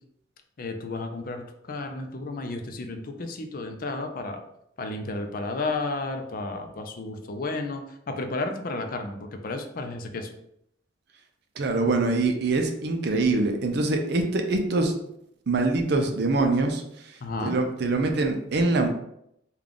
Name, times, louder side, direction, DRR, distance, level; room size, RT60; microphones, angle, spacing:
voice 1, 0.6-4.4 4.8-10.3 17.2-17.6, left 2 dB, 50° left, 5 dB, 0.4 m, -32 dB
voice 2, 11.6-14.9 15.5-16.8 17.5-18.9, right 3 dB, 60° right, 4 dB, 0.5 m, -24 dB
3.6 x 2.3 x 3.6 m, 0.75 s
head